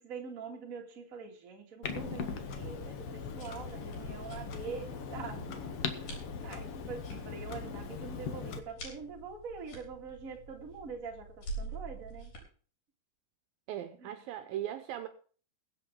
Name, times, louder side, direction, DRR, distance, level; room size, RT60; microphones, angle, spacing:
voice 1, 0.0-12.3 14.0-14.2, right 5 dB, 30° right, 1 dB, 1.9 m, -44 dB
Clock, 1.8-8.6, left 6 dB, 90° left, 1.3 m, -40 dB
sound 1, 3.1-12.4, right 2 dB, 55° left, 6.2 m, -47 dB
voice 2, 13.7-15.1, right 11 dB, 75° right, 8 dB, 2.4 m, -38 dB
22.0 x 7.9 x 3.7 m, 0.41 s
omnidirectional pair, 4.5 m